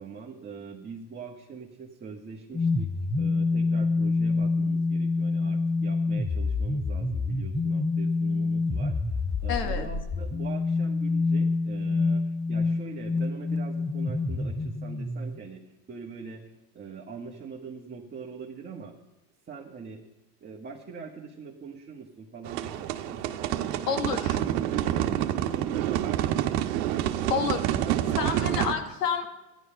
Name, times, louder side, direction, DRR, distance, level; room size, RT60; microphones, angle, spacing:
voice 1, 0.0-9.0 9.4-15.6 15.9-16.5 16.7-18.9 19.5-20.0 20.4-26.5 26.9-28.6, right 5 dB, 20° right, -1 dB, 1.5 m, -42 dB
sound 1, 2.5-15.4, left 3 dB, 5° left, 0.6 m, -27 dB
voice 2, 9.5-9.9 23.9-24.4 27.3-27.6 28.2-29.3, left 7 dB, 85° left, 6 dB, 2.0 m, -29 dB
sound 2, 22.4-28.7, right 12 dB, 70° right, 1.2 m, -28 dB
14.5 x 10.5 x 5.6 m, 0.98 s
supercardioid pair, 110°, 47 cm